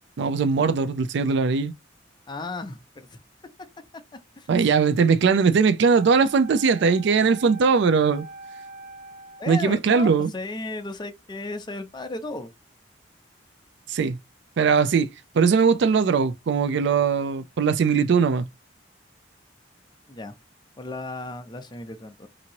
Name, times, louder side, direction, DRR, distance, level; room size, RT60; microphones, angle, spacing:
voice 1, 0.2-1.7 4.5-8.2 9.5-10.3 13.9-14.2 14.6-15.1 15.3-18.5, right 5 dB, 65° right, 0.4 m, -20 dB
voice 2, 2.3-2.8 4.4-4.5 9.4-12.5 20.1-20.3 20.8-22.3, left 2 dB, 25° left, 0.5 m, -34 dB
Wind instrument woodwind instrument, 5.9-9.7, right 2 dB, 20° right, 1.1 m, -43 dB
2.9 x 2.6 x 2.8 m
head